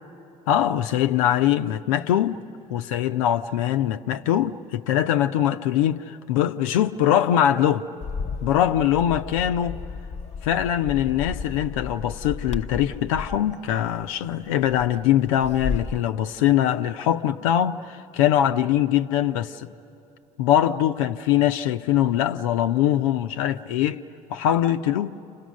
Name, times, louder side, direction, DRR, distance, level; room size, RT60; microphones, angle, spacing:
voice 1, 0.5-2.4 2.7-7.9 8.4-9.8 10.4-19.7 20.4-24.0 24.3-25.2, left 11 dB, 85° left, 0.5 m, -22 dB
Bird, 8.0-16.0, left 5 dB, 40° left, 0.7 m, -34 dB
29.5 x 26.0 x 6.3 m
hypercardioid pair, 55°, 17 cm